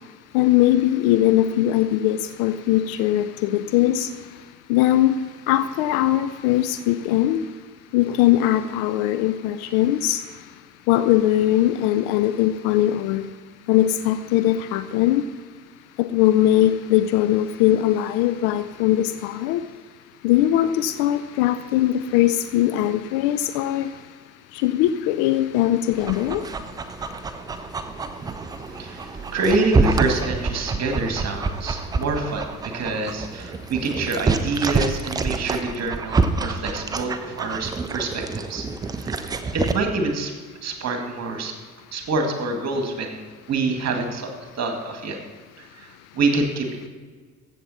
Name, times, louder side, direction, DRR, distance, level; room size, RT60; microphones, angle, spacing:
voice 1, 0.3-4.1 4.7-5.2 5.5-7.4 7.9-10.2 10.9-13.2 13.7-15.2 16.0-19.6 20.2-23.9 24.5-26.4, left 13 dB, 50° left, 11 dB, 0.6 m, -20 dB
Dog, 25.9-39.7, right 4 dB, 10° right, 0.3 m, -27 dB
voice 2, 28.6-38.7 39.0-39.2 39.5-40.3 40.6-41.5 41.9-43.2 43.5-45.2 45.8-46.9, right 3 dB, 35° right, 4 dB, 2.0 m, -26 dB
14.5 x 7.4 x 4.2 m, 1.5 s
figure-of-eight pair, 60°, 48 cm